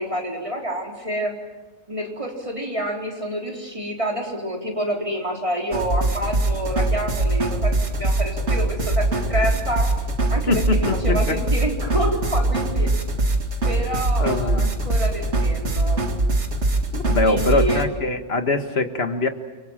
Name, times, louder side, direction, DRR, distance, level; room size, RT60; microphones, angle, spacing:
voice 1, 0.0-1.3 1.9-9.9 10.3-13.0 13.6-16.1 17.2-17.9, equal, 25° right, 0 dB, 4.5 m, -28 dB
sound 1, 5.7-17.8, right 2 dB, 70° right, 2.5 m, -22 dB
voice 2, 10.9-11.4 14.2-14.7 16.9-19.3, left 2 dB, 60° left, 7 dB, 2.0 m, -23 dB
29.5 x 23.5 x 7.5 m, 1.2 s
omnidirectional pair, 1.2 m